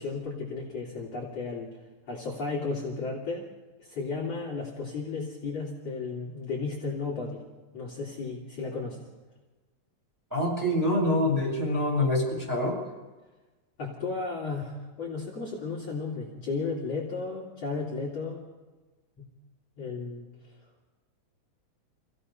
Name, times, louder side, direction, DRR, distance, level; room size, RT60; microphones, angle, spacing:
voice 1, 0.0-1.7 2.1-3.5 3.8-7.4 7.7-9.1 13.8-18.5 19.2-19.3 19.8-20.3, left 4 dB, 45° left, -5 dB, 3.8 m, -34 dB
voice 2, 10.3-12.8, left 1 dB, 5° right, -3 dB, 7.6 m, -25 dB
27.5 x 17.0 x 5.6 m, 1.2 s
omnidirectional pair, 4.1 m